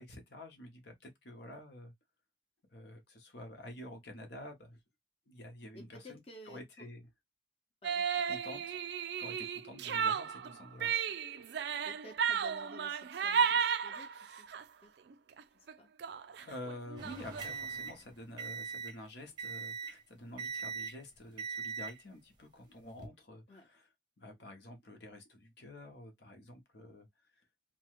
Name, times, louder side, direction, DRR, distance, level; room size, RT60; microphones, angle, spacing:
voice 1, 0.0-1.9 2.7-4.8 5.3-6.2 6.5-7.0 8.3-8.9 9.2-10.9 11.4-11.7 16.4-23.9 24.2-27.1, left 1 dB, 60° left, 1.0 m, -49 dB
voice 2, 5.7-6.9 7.8-8.4 10.8-11.2 11.8-14.5 14.8-14.9 15.5-15.9 23.5-23.7, left 1 dB, 30° left, 0.9 m, -54 dB
sound 1, 7.8-14.6 15.1-15.4 15.7-15.8 16.0-17.4, right 7 dB, 60° right, 0.3 m, -34 dB
sound 2, 17.0-19.0 19.4-20.0 20.4-21.0 21.4-22.0 22.8-23.1, right 6 dB, 25° right, 0.7 m, -41 dB
3.0 x 2.2 x 3.0 m
head